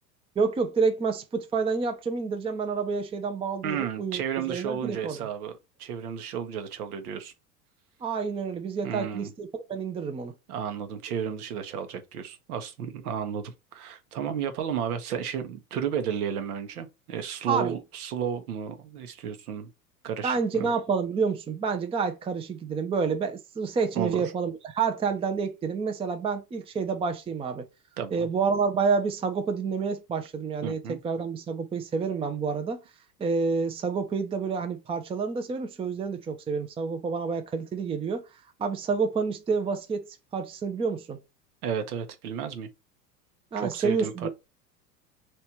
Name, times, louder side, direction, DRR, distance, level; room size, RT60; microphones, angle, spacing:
voice 1, 0.4-5.3 8.0-10.3 17.5-17.8 20.2-27.7 28.1-32.8 33.2-38.2 38.6-40.0 40.3-41.2 43.5-44.3, right 5 dB, 10° right, 0.6 m, -28 dB
voice 2, 3.6-7.3 8.8-9.3 10.5-19.7 20.0-20.7 23.9-24.2 28.0-28.3 30.6-31.0 41.6-42.7 43.6-44.3, right 8 dB, 70° right, 1.0 m, -33 dB
3.3 x 3.0 x 4.2 m
hypercardioid pair, 85°, 47 cm